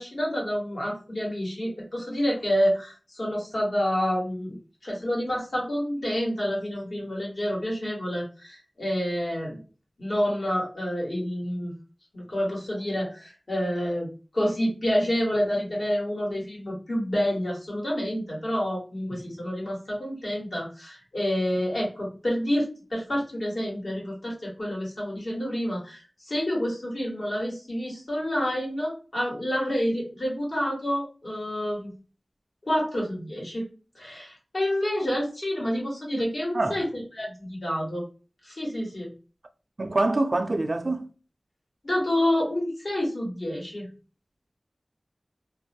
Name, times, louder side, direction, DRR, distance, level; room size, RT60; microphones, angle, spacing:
voice 1, 0.0-4.6 4.8-9.6 10.0-11.7 12.1-14.1 14.3-31.9 32.6-33.6 33.9-38.0 38.4-39.1 41.8-43.9, equal, 75° left, 1.4 m, -28 dB
voice 2, 39.8-41.1, right 2 dB, 65° right, 0.4 m, -25 dB
2.5 x 2.1 x 2.6 m
wide cardioid pair, 55°, 0 cm